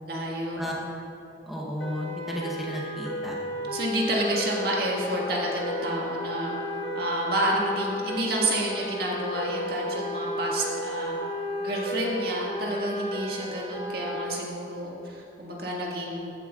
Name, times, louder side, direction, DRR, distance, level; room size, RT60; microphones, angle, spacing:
voice 1, 0.1-0.7 3.7-6.6 6.9-11.2 11.6-16.3, right 1 dB, 60° right, -3 dB, 1.8 m, -29 dB
voice 2, 1.5-3.4, equal, ahead, -5 dB, 0.9 m, -33 dB
sound 1, 1.8-14.3, left 1 dB, 65° left, 1.2 m, -33 dB
14.5 x 9.7 x 2.4 m, 2.9 s
head